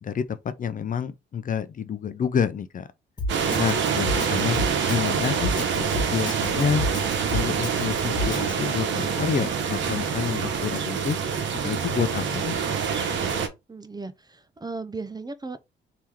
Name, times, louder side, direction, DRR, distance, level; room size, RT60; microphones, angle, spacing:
voice 1, 0.0-2.9 3.6-6.8 7.3-11.2 11.6-12.6, left 7 dB, 45° left, 0.7 m, -28 dB
Drum kit, 3.2-8.5, left 1 dB, 20° left, 2.0 m, -29 dB
sound 1, 3.3-13.5, right 6 dB, 70° right, 1.1 m, -26 dB
voice 2, 13.7-15.6, right 3 dB, 20° right, 0.6 m, -36 dB
3.6 x 3.0 x 4.7 m
cardioid pair, 90°, 20 cm